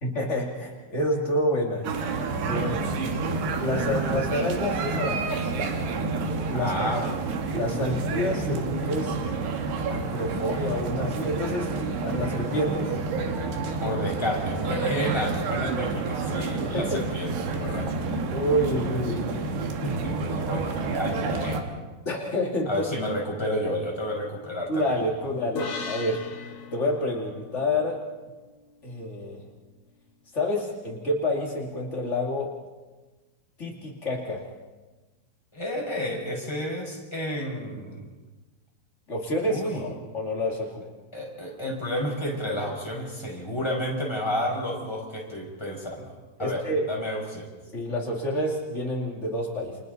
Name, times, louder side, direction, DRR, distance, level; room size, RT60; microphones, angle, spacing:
voice 1, 0.0-1.9 2.4-2.8 3.6-5.9 6.5-6.7 7.5-9.3 9.9-11.8 12.0-13.0 15.5-15.7 16.6-17.0 18.3-19.3 22.0-22.9 24.7-26.2 26.7-28.0 28.8-29.4 30.3-32.5 33.6-34.4 39.1-39.9 40.1-40.8 46.4-46.8 47.7-49.8, left 1 dB, 70° left, -2 dB, 0.6 m, -28 dB
sound 1, 1.8-21.6, right 3 dB, 65° right, 3.7 m, -29 dB
voice 2, 2.8-3.2 6.5-7.3 13.8-17.9 19.8-21.6 22.7-25.0 35.5-38.0 39.4-39.8 41.1-47.5, equal, 5° left, -2 dB, 5.2 m, -31 dB
sound 2, 25.5-29.0, left 4 dB, 90° left, 1.3 m, -38 dB
29.5 x 28.0 x 4.0 m, 1.2 s
omnidirectional pair, 5.6 m